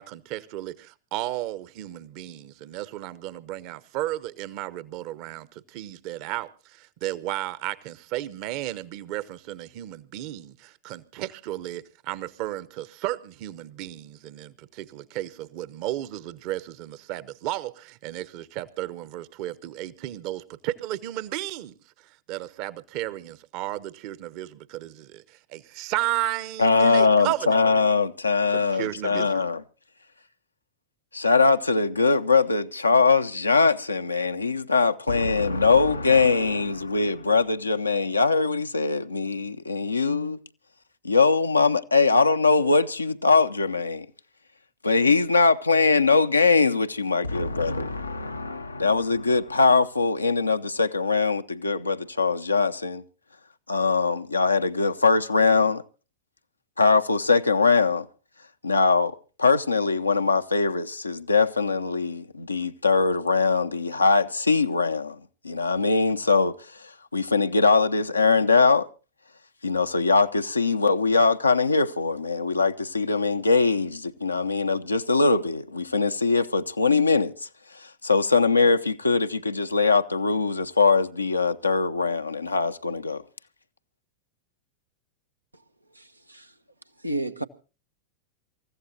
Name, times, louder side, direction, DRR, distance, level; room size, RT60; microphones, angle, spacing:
voice 1, 0.0-27.6 28.5-29.4, right 15 dB, 45° right, 1.0 m, -34 dB
voice 2, 26.6-29.6 31.1-40.4 41.0-44.1 44.8-53.0 53.7-55.8 56.8-58.0 58.6-65.2 65.4-66.5 67.1-68.9 69.6-77.3 77.8-83.2, left 4 dB, 80° left, 0.7 m, -22 dB
voice 3, 85.9-86.5 87.0-87.4, right 2 dB, 85° right, 0.9 m, -32 dB
27.5 x 15.0 x 2.8 m
figure-of-eight pair, 90°, 0 cm